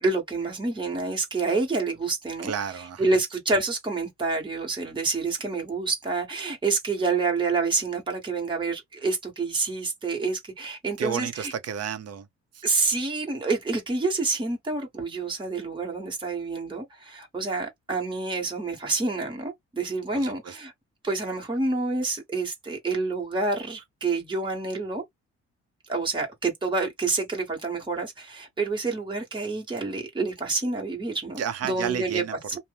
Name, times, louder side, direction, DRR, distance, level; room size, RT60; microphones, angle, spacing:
voice 1, 0.0-11.5 12.6-20.7 21.0-25.0 25.9-32.2, right 3 dB, 15° right, 1.2 m, -28 dB
voice 2, 2.4-3.0 11.0-12.3 12.5-12.6 20.1-20.6 31.4-32.6, right 8 dB, 55° right, 0.8 m, -31 dB
2.8 x 2.2 x 3.4 m
cardioid pair, 90°, 30 cm